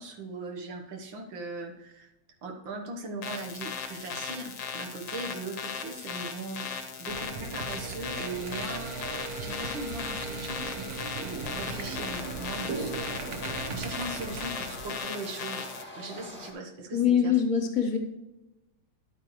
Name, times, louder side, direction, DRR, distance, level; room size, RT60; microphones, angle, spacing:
voice 1, 0.0-2.1 2.4-12.9 13.7-17.4, right 3 dB, 90° right, 3 dB, 1.9 m, -39 dB
sound 1, 3.2-15.8, left 6 dB, 85° left, 1.6 m, -38 dB
sound 2, 7.1-15.0, right 4 dB, 60° right, 1.3 m, -37 dB
sound 3, 11.4-16.5, left 1 dB, 5° left, 1.7 m, -44 dB
voice 2, 16.9-18.0, left 8 dB, 55° left, 4 dB, 1.1 m, -23 dB
11.0 x 8.8 x 3.1 m, 0.98 s
omnidirectional pair, 2.0 m